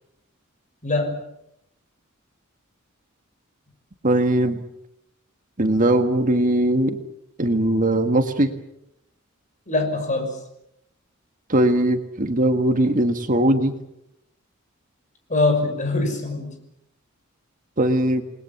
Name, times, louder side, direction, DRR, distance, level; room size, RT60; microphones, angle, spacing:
voice 1, 0.8-1.2 9.7-10.4 15.3-16.5, left 2 dB, 35° left, 5 dB, 6.2 m, -23 dB
voice 2, 4.0-4.6 5.6-7.0 7.4-8.5 11.5-13.7 17.8-18.2, right 1 dB, 40° right, 7 dB, 1.7 m, -20 dB
29.0 x 21.0 x 7.2 m, 0.81 s
head